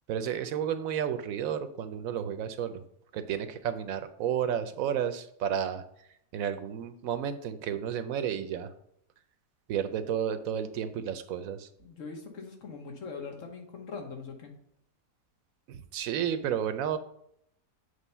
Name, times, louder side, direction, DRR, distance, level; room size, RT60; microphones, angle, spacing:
voice 1, 0.1-2.8 3.1-5.8 6.3-8.7 9.7-11.7 15.7-17.0, right 9 dB, 75° right, 11 dB, 1.0 m, -32 dB
voice 2, 11.8-14.5, left 4 dB, 65° left, 2 dB, 1.5 m, -42 dB
7.6 x 3.3 x 5.4 m, 0.72 s
omnidirectional pair, 1.5 m